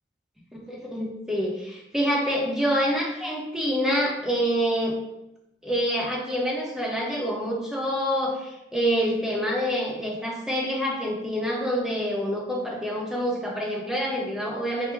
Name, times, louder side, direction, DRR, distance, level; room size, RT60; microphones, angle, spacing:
voice 1, 0.5-5.0 5.6-14.9, equal, 5° right, -3 dB, 0.6 m, -27 dB
4.5 x 2.0 x 3.4 m, 0.90 s
head